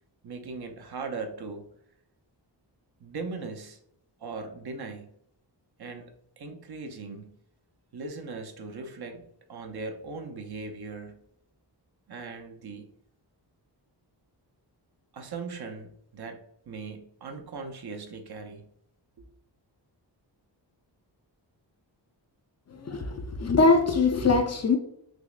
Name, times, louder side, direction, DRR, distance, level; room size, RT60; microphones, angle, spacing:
voice 1, 0.2-1.7 3.0-3.8 4.2-5.1 5.8-7.4 7.9-11.2 12.1-12.9 15.1-18.7 19.2-19.3, right 4 dB, 60° right, 0.6 m, -39 dB
voice 2, 22.8-24.8, left 3 dB, 40° left, 0.4 m, -22 dB
6.1 x 2.1 x 2.4 m
wide cardioid pair, 125°, 43 cm